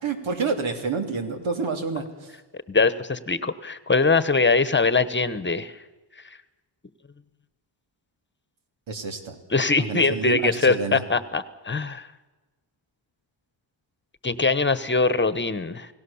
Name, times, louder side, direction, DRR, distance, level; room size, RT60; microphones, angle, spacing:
voice 1, 0.0-2.3 8.9-9.3 9.8-11.0, right 4 dB, 90° right, 5 dB, 3.3 m, -29 dB
voice 2, 2.7-5.7 9.5-12.1 14.2-15.9, left 4 dB, 25° left, 14 dB, 1.1 m, -22 dB
29.0 x 18.0 x 7.2 m, 1.2 s
wide cardioid pair, 110°, 45 cm